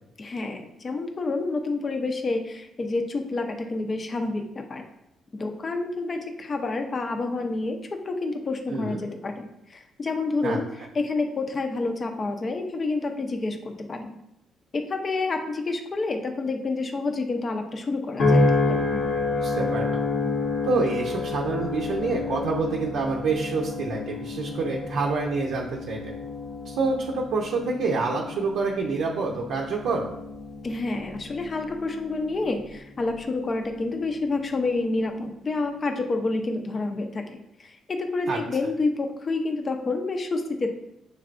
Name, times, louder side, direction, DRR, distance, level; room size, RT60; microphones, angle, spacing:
voice 1, 0.2-4.8 5.3-10.7 10.9-14.2 14.7-18.9 30.6-40.7, left 3 dB, 35° left, 5 dB, 0.6 m, -29 dB
voice 2, 8.7-9.0 10.4-10.6 19.4-20.0 20.6-26.1 26.6-30.1 38.3-38.4, right 4 dB, 80° right, -1 dB, 0.6 m, -27 dB
sound 1, 18.2-32.7 33.2-33.6, left 3 dB, 80° left, 0.9 m, -29 dB
6.6 x 3.2 x 2.5 m, 0.84 s
cardioid pair, 90°, 0 cm